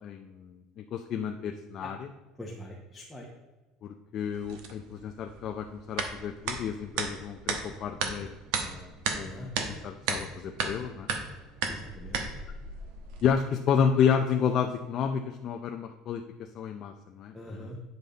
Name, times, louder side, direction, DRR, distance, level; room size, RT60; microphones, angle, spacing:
voice 1, 0.0-2.1 3.8-8.3 8.6-8.9 9.2-11.1 13.2-16.2 16.6-17.8, left 7 dB, 35° left, 4 dB, 0.5 m, -30 dB
voice 2, 2.4-3.3 9.3-9.5 11.7-12.2 17.3-17.8, left 1 dB, 5° left, -3 dB, 0.8 m, -43 dB
sound 1, 4.3-13.3, right 5 dB, 70° right, 1.1 m, -35 dB
9.3 x 5.3 x 4.0 m, 1.2 s
cardioid pair, 175°, 0 cm